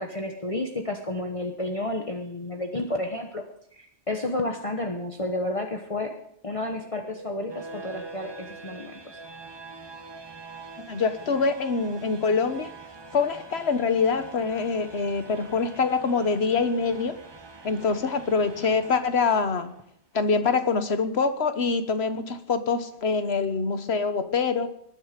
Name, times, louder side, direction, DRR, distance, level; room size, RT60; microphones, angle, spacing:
voice 1, 0.0-3.4 3.7-6.1 6.4-9.0, left 2 dB, 30° left, 2 dB, 1.1 m, -31 dB
sound 1, 6.8-19.8, right 3 dB, 25° right, 0.8 m, -44 dB
voice 2, 10.9-12.7 13.1-17.2 17.6-19.7 20.1-24.7, left 4 dB, 60° left, 9 dB, 1.4 m, -25 dB
20.0 x 9.8 x 5.1 m, 0.70 s
omnidirectional pair, 1.3 m